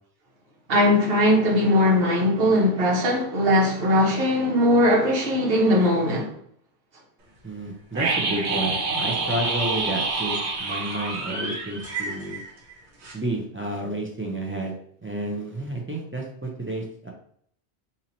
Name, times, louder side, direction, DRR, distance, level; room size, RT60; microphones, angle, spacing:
voice 1, 0.7-6.3, left 1 dB, 60° right, 1.2 m, -20 dB
voice 2, 7.4-12.4 13.1-14.7 15.0-17.1, right 1 dB, 20° right, 0.3 m, -30 dB
sound 1, 7.9-12.8 13.0-13.1, right 3 dB, 80° right, 1.2 m, -27 dB
2.9 x 2.7 x 3.9 m
omnidirectional pair, 1.1 m